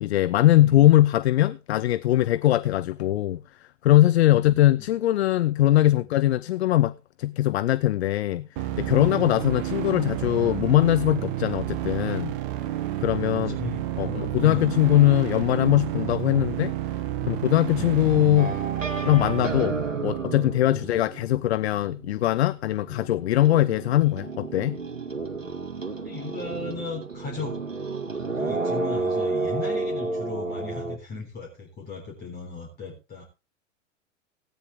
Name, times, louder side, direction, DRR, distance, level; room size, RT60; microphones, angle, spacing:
voice 1, 0.0-3.4 3.8-8.5 8.8-12.4 13.0-13.6 14.0-16.7 17.3-18.6 19.0-24.8, left 14 dB, 55° left, 0.6 m, -21 dB
voice 2, 4.3-4.9 6.0-6.1 13.3-14.7 17.2-18.0 20.7-20.9 26.0-27.6 28.4-33.2, left 3 dB, 25° left, 4.0 m, -37 dB
sound 1, 8.6-20.5, right 14 dB, 45° right, 1.2 m, -30 dB
sound 2, 18.4-22.4 22.7-31.0, right 3 dB, 80° right, 2.0 m, -31 dB
16.0 x 9.7 x 3.6 m
figure-of-eight pair, 95°, 38 cm